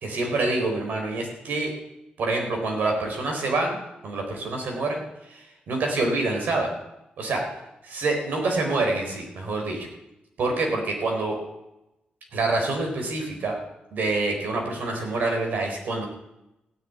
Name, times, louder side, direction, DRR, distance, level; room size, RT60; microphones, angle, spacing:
voice 1, 0.0-1.7 2.2-5.0 5.3-6.7 7.2-7.4 7.8-9.9 10.4-11.4 12.3-13.6 13.9-16.0, right 2 dB, 75° right, 1 dB, 4.0 m, -26 dB
15.5 x 7.1 x 9.4 m, 0.91 s
wide cardioid pair, 180°, 3 cm